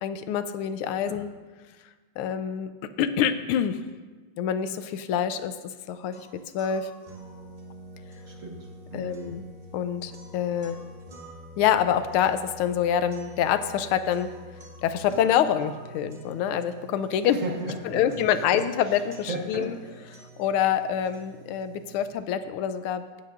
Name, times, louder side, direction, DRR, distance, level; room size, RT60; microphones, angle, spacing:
voice 1, 0.0-1.3 2.2-2.7 3.0-3.8 4.4-5.5 5.9-6.3 6.5-6.9 8.9-9.4 9.7-10.8 11.6-14.3 14.8-17.4 17.9-19.7 20.4-23.0, left 9 dB, 90° left, 11 dB, 1.5 m, -26 dB
sound 1, 6.1-22.1, right 1 dB, 75° right, 0.4 m, -47 dB
voice 2, 8.3-9.4 17.3-18.3 18.5-18.6 18.9-19.0 19.3-19.8, right 1 dB, 45° right, 1 dB, 1.2 m, -35 dB
11.5 x 9.3 x 2.5 m, 1.3 s
omnidirectional pair, 2.3 m